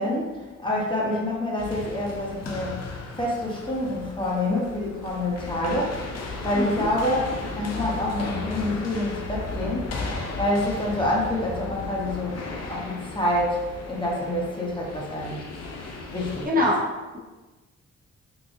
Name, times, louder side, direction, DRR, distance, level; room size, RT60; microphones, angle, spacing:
voice 1, 0.0-2.8 3.2-6.0 6.4-10.0 10.4-12.4 12.7-15.5 16.1-16.6, left 1 dB, 15° left, -4 dB, 0.9 m, -27 dB
sound 1, 1.6-16.5, left 3 dB, 60° left, 0.6 m, -35 dB
voice 2, 6.5-6.8 16.4-16.8, left 1 dB, 30° right, -4 dB, 0.7 m, -23 dB
3.9 x 2.4 x 2.5 m, 1.2 s
cardioid pair, 65°, 29 cm